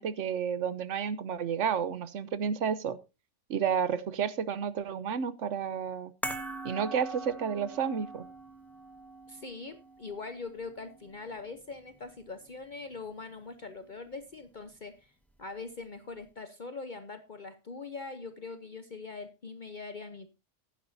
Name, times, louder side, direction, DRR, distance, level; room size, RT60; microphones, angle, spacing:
voice 1, 0.0-3.0 3.5-6.1 6.6-8.2, right 7 dB, 75° right, 15 dB, 1.2 m, -31 dB
sound 1, 6.2-12.6 12.9-13.1, right 1 dB, ahead, 1.3 m, -43 dB
voice 2, 9.3-15.1 15.4-20.3, left 4 dB, 45° left, 9 dB, 1.0 m, -42 dB
14.5 x 11.0 x 2.7 m, 0.28 s
omnidirectional pair, 1.3 m